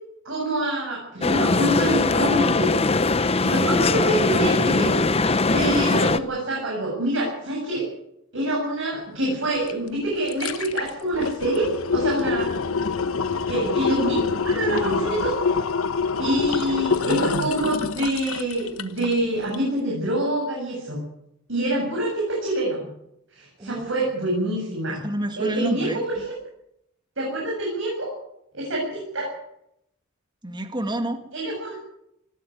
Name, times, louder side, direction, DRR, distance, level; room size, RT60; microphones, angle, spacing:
voice 1, 0.2-3.1 3.4-4.9 5.5-7.9 8.3-12.5 13.5-15.6 16.2-21.0 21.5-22.9 23.3-25.0 25.4-26.2 27.2-28.1 28.5-29.3 31.3-31.8, right 1 dB, 65° right, -2 dB, 7.4 m, -26 dB
sound 1, 1.2-6.2, left 3 dB, 30° left, 0.8 m, -21 dB
sound 2, 9.7-9.8 10.1-19.2 19.5-19.6, left 5 dB, 85° left, 1.2 m, -26 dB
voice 2, 23.6-24.0 24.9-26.0 30.4-31.3, right 1 dB, 20° right, 7 dB, 1.9 m, -29 dB
19.5 x 14.5 x 9.4 m, 0.79 s
head